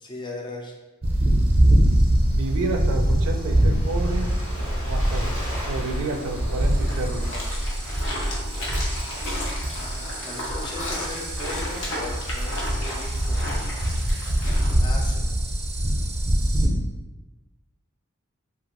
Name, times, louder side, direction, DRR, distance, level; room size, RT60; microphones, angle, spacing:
voice 1, 0.0-0.7 9.6-13.4 14.8-15.3, left 2 dB, 20° left, 0 dB, 0.4 m, -38 dB
sound 1, 1.0-16.7, right 1 dB, 25° right, 0.6 m, -23 dB
Waves surf, 2.2-7.9, equal, 85° left, 1.2 m, -39 dB
voice 2, 2.3-4.3 4.9-5.3 5.7-7.4, right 3 dB, 85° right, 4 dB, 0.4 m, -30 dB
sound 2, 7.2-14.7, left 1 dB, 65° left, 0.7 m, -34 dB
2.8 x 2.3 x 2.9 m, 1.1 s
head